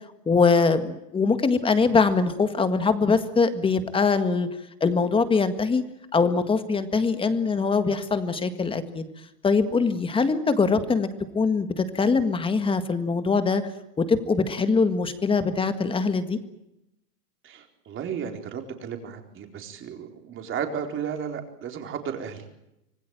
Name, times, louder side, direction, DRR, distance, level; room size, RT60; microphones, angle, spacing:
voice 1, 0.2-4.5 4.8-5.8 6.1-9.1 9.4-11.1 11.3-13.6 14.0-16.4, left 4 dB, 10° left, 10 dB, 1.8 m, -22 dB
voice 2, 17.4-22.4, right 7 dB, 25° right, 4 dB, 4.3 m, -34 dB
26.0 x 18.5 x 9.2 m, 0.87 s
hypercardioid pair, 135°, 45 cm